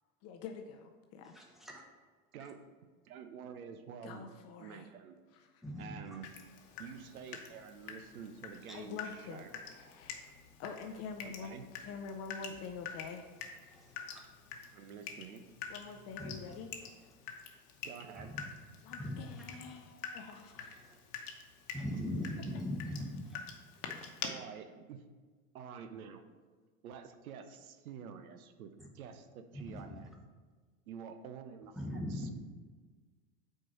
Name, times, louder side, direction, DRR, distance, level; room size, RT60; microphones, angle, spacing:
voice 1, 0.2-1.3 4.0-4.9 5.3-5.6 8.7-9.5 9.7-13.3 15.7-16.7 18.8-20.8, left 5 dB, 35° left, 5 dB, 0.6 m, -46 dB
voice 2, 1.3-1.8 5.6-6.0 8.7-8.8 13.7-14.2 16.2-16.4 18.2-18.4 19.0-19.4 20.8-21.0 21.7-23.4 29.5-30.0 31.8-32.3, left 1 dB, ahead, -1 dB, 1.2 m, -40 dB
voice 3, 3.0-4.3 4.6-5.2 5.8-6.3 6.8-9.6 11.2-11.6 14.7-15.4 17.8-18.3 21.7-21.8 24.0-25.0 25.5-26.2 26.8-30.1 30.9-32.3, right 7 dB, 65° right, 8 dB, 0.8 m, -48 dB
Water tap faucet / Drip, 6.2-24.3, left 7 dB, 50° left, 1.1 m, -47 dB
6.0 x 4.6 x 5.8 m, 1.4 s
hypercardioid pair, 95°, 46 cm